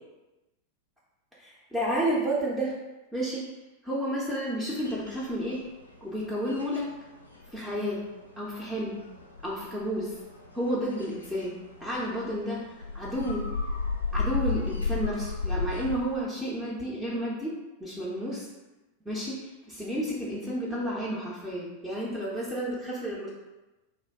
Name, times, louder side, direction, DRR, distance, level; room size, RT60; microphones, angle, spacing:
voice 1, 1.4-2.7 3.1-3.5 3.8-5.6 6.0-6.9 7.5-8.0 8.4-9.0 9.4-10.2 10.5-11.5 11.8-12.6 12.9-13.4 14.1-18.5 19.1-23.3, equal, 5° right, -6 dB, 0.5 m, -31 dB
sound 1, 4.8-5.9 6.2-16.2, left 4 dB, 80° left, 0.4 m, -34 dB
2.5 x 2.2 x 3.4 m, 1.1 s
figure-of-eight pair, 90°, 0 cm